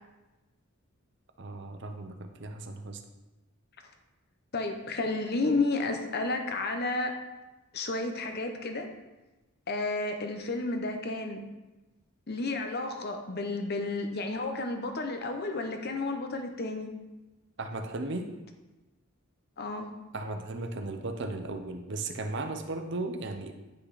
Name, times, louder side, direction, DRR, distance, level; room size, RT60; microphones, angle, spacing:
voice 1, 1.4-3.0 17.6-18.3 20.1-23.5, right 2 dB, 55° right, 6 dB, 0.8 m, -36 dB
voice 2, 4.5-7.1 7.7-8.9 9.7-11.5 12.3-16.9 19.6-19.9, left 3 dB, 50° left, 5 dB, 0.9 m, -31 dB
9.9 x 5.7 x 4.1 m, 1.1 s
head